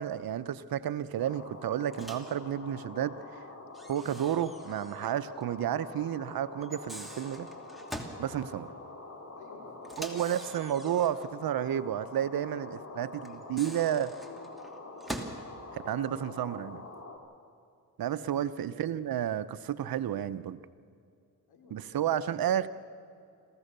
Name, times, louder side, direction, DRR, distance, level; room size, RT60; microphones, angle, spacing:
voice 1, 0.0-3.2 3.9-7.5 8.2-8.7 10.0-12.7 13.0-14.1 15.7-16.8 18.0-20.6 21.7-22.7, right 10 dB, 75° right, 14 dB, 0.9 m, -31 dB
sound 1, 1.2-17.2, left 2 dB, 45° left, 3.7 m, -46 dB
Microwave oven, 1.9-2.4 3.7-5.1 5.4-5.5 6.6-8.2 9.8-11.3 13.3-15.4, right 1 dB, ahead, 2.8 m, -44 dB
voice 2, 9.3-11.4 12.3-13.1 13.6-13.7 14.1-14.7 15.6-16.7 18.1-18.9 21.5-22.6, left 4 dB, 90° left, 2 dB, 3.6 m, -54 dB
26.0 x 15.5 x 6.8 m, 2.4 s
cardioid pair, 55°, 36 cm